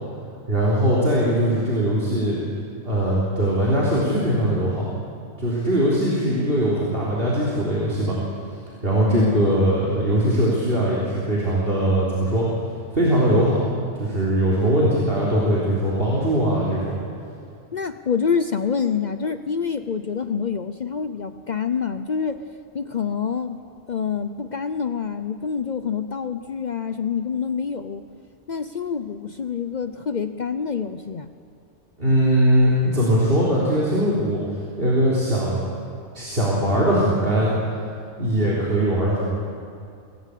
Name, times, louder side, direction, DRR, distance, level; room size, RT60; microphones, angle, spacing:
voice 1, 0.5-2.4 2.8-4.9 5.4-8.2 8.8-12.5 12.9-13.7 14.0-17.0 32.0-34.4 34.8-35.7 36.1-37.5 38.2-39.3, right 1 dB, 55° right, -6 dB, 3.9 m, -20 dB
voice 2, 9.1-9.6 17.7-22.4 22.7-23.6 23.9-28.0 28.5-31.3, left 6 dB, 45° left, 10 dB, 0.7 m, -26 dB
24.5 x 17.5 x 8.4 m, 2.5 s
omnidirectional pair, 1.1 m